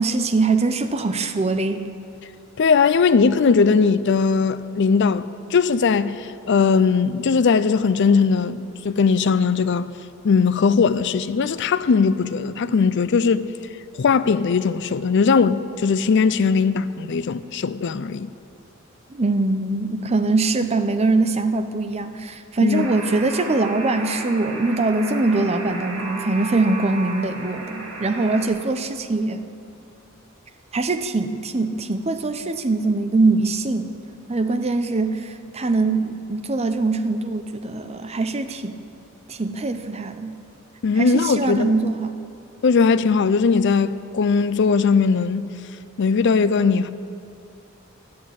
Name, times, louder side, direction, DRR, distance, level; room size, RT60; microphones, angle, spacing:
voice 1, 0.0-1.9 19.1-29.4 30.7-33.9 34.3-38.8 39.3-40.4 40.9-42.1, right 3 dB, 30° right, 0.7 m, -22 dB
voice 2, 2.6-9.9 10.2-13.5 14.0-18.3 22.6-22.9 40.8-41.7 42.6-45.5 46.0-46.9, left 5 dB, 55° left, 0.4 m, -19 dB
Alarm, 22.7-28.5, right 3 dB, 75° right, 2.3 m, -34 dB
12.0 x 8.5 x 8.6 m
head